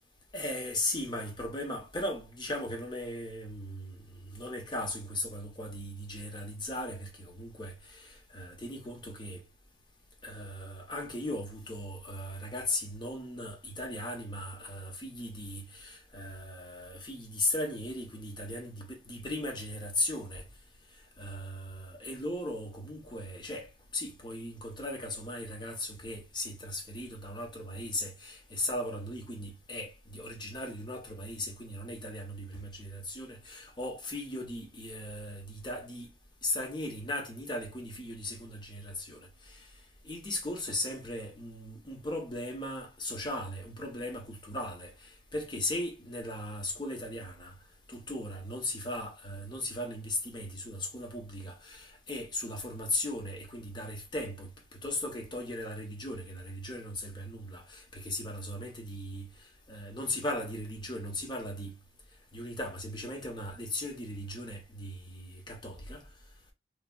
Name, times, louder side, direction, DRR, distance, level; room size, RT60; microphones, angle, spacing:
voice 1, 0.3-9.4 10.2-20.5 21.2-36.1 36.4-39.7 40.0-47.5 47.9-59.3 59.7-61.8 62.3-66.0, left 1 dB, 25° left, 0.7 m, -37 dB
3.2 x 2.2 x 2.4 m
head